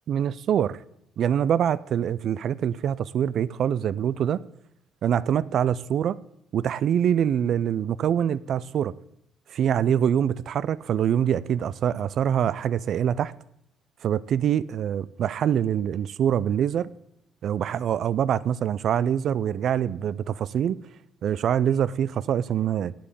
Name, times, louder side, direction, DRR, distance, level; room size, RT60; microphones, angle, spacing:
voice 1, 0.1-0.8 1.2-4.4 5.0-6.2 6.5-8.9 9.5-13.3 14.0-16.9 17.4-20.8 21.2-22.9, right 9 dB, 65° right, 0.4 m, -24 dB
8.5 x 7.6 x 8.6 m
supercardioid pair, 75°, 0 cm